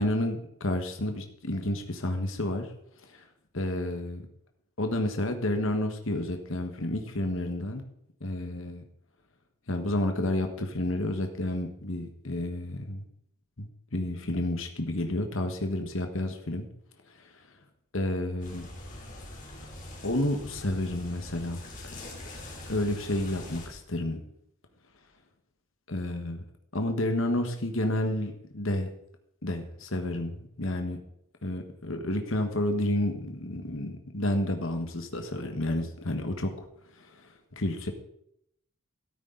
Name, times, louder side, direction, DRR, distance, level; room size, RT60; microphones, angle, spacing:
voice 1, 0.0-2.7 3.0-3.2 3.5-4.2 4.8-7.8 8.2-8.8 9.7-13.0 13.6-16.7 17.1-17.4 17.9-18.7 20.0-21.6 22.7-24.2 25.9-26.4 26.7-28.9 29.4-31.0 31.4-36.7 36.9-37.9, left 1 dB, 65° left, 5 dB, 1.5 m, -30 dB
sound 1, 18.4-23.7, left 1 dB, 35° left, 3.3 m, -43 dB
13.5 x 13.0 x 4.0 m, 0.74 s
head